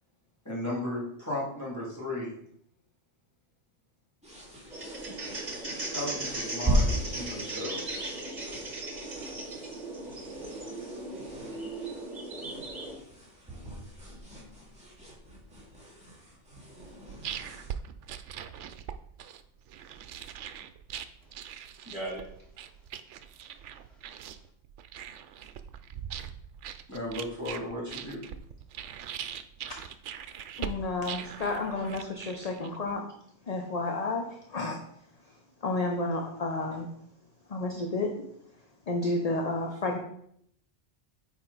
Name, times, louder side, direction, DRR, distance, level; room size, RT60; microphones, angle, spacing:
voice 1, 0.4-2.3 5.9-8.1 26.9-28.2, left 1 dB, 15° left, -7 dB, 2.6 m, -35 dB
sound 1, 4.2-17.7, right 1 dB, 5° right, 2.3 m, -37 dB
sound 2, 4.7-12.9, right 2 dB, 40° right, 1.4 m, -38 dB
sound 3, 16.8-32.9, right 9 dB, 80° right, 0.9 m, -41 dB
voice 2, 21.2-24.5, right 1 dB, 25° right, -4 dB, 3.0 m, -45 dB
voice 3, 30.6-33.1 33.5-34.8 35.6-36.9 37.5-38.2 38.9-40.0, left 2 dB, 40° left, 3 dB, 0.7 m, -31 dB
9.0 x 4.5 x 4.0 m, 0.70 s
omnidirectional pair, 1.2 m